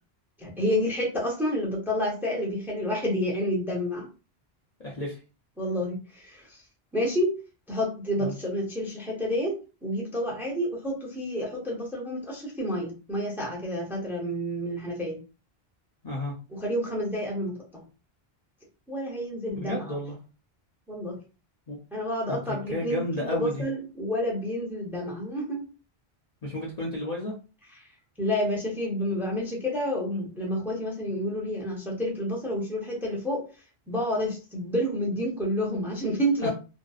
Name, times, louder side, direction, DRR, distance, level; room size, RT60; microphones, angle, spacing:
voice 1, 0.4-4.1 5.6-6.6 6.9-7.3 7.7-9.5 9.8-15.2 16.5-17.8 18.9-20.0 20.9-21.1 21.9-25.7 28.2-33.4 33.9-36.5, equal, ahead, -2 dB, 0.6 m, -29 dB
voice 2, 4.8-5.2 8.2-8.3 16.0-16.4 19.5-20.2 21.7-21.8 22.3-23.6 26.4-27.3 36.4-36.5, left 1 dB, 50° left, -3 dB, 0.6 m, -32 dB
2.6 x 2.1 x 2.3 m, 0.33 s
omnidirectional pair, 1.1 m